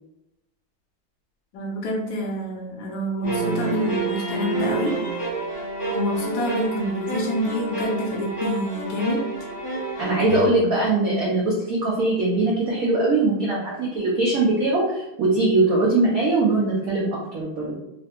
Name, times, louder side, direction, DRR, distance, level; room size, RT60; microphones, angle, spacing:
voice 1, 1.5-5.0 5.9-9.2 10.1-10.2, left 1 dB, 70° left, -1 dB, 1.3 m, -27 dB
sound 1, 3.2-10.5, right 3 dB, 45° left, 0.8 m, -28 dB
voice 2, 10.0-17.7, right 2 dB, 75° right, -5 dB, 0.8 m, -21 dB
3.7 x 2.1 x 2.8 m, 0.91 s
omnidirectional pair, 2.3 m